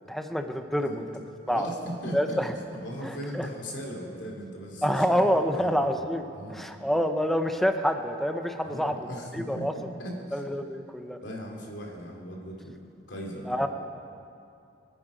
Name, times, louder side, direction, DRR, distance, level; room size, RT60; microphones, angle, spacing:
voice 1, 0.1-1.1 1.5-1.7 2.1-2.5 3.0-3.5 4.8-9.0 9.3-9.7 10.3-11.2 13.5-13.7, equal, ahead, 6 dB, 0.7 m, -27 dB
voice 2, 1.5-2.4 2.7-5.8 6.3-6.7 8.6-9.7 10.0-10.5 11.2-12.7 13.1-13.7, equal, 70° left, -1 dB, 3.0 m, -38 dB
25.0 x 9.9 x 5.1 m, 2.5 s
head